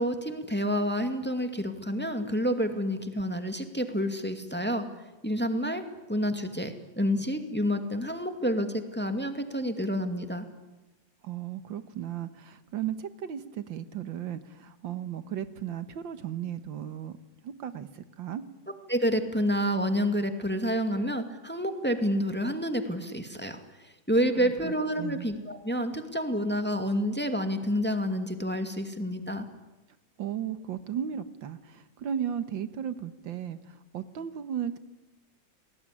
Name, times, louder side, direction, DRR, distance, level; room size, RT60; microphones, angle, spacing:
voice 1, 0.0-4.9 5.2-5.8 6.1-10.5 18.9-29.5, equal, 5° left, 7 dB, 2.2 m, -29 dB
voice 2, 11.2-17.2 17.4-18.4 24.4-25.3 30.2-34.8, right 9 dB, 80° right, 12 dB, 2.0 m, -35 dB
29.5 x 20.5 x 10.0 m, 1.1 s
omnidirectional pair, 2.0 m